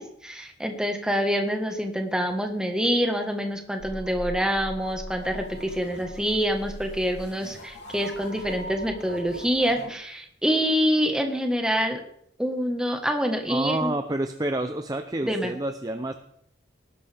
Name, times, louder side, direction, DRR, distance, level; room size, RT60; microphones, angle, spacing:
voice 1, 0.0-12.0 12.4-13.9 15.2-15.5, equal, 5° right, 4 dB, 1.4 m, -26 dB
sound 1, 3.8-9.9, equal, 65° left, 3.1 m, -40 dB
voice 2, 13.5-16.1, right 2 dB, 20° right, 7 dB, 0.5 m, -28 dB
19.0 x 11.5 x 3.5 m, 0.71 s
head